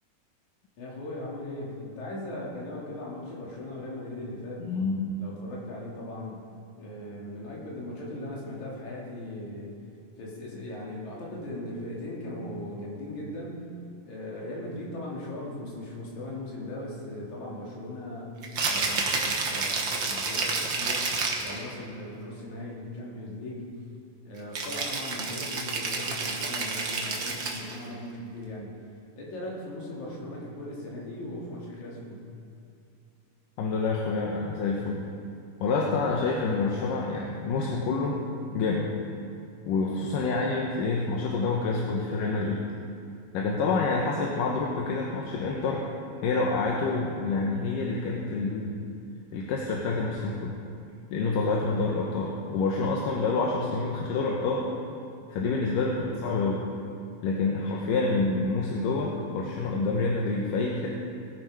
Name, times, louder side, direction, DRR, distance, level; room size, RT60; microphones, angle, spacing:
voice 1, 0.8-4.7 5.2-6.4 6.7-9.8 10.2-13.7 14.1-21.1 21.4-23.8 24.2-28.7 29.2-32.2, left 1 dB, 60° left, -4 dB, 3.8 m, -38 dB
voice 2, 4.6-5.2 33.6-35.0 35.6-38.2 38.5-38.9 39.6-42.6 43.3-45.8 46.2-48.8 49.3-50.6 51.1-54.7 55.3-56.6 57.2-60.9, left 3 dB, 80° left, -1 dB, 2.7 m, -27 dB
Rattle (instrument), 18.4-21.6 24.5-27.8, right 4 dB, 55° right, 1.3 m, -30 dB
18.0 x 10.5 x 4.9 m, 2.4 s
omnidirectional pair, 3.9 m